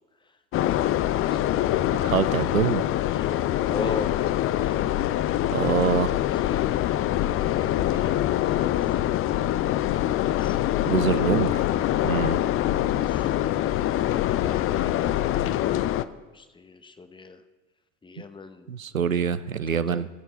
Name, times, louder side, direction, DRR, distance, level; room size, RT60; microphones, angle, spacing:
sound 1, 0.5-16.1, left 13 dB, 35° left, 0.5 m, -24 dB
voice 1, 2.0-2.8 5.5-6.2 10.9-11.6 12.0-12.4 18.7-20.1, right 7 dB, 85° right, 14 dB, 0.6 m, -25 dB
voice 2, 3.6-4.1 6.0-6.6 7.3-8.7 10.4-10.7 12.8-15.5 15.8-16.0 16.3-17.4 18.0-18.7 19.7-20.1, left 3 dB, 10° left, 10 dB, 1.0 m, -41 dB
23.5 x 8.1 x 4.1 m, 1.2 s
figure-of-eight pair, 65°, 40 cm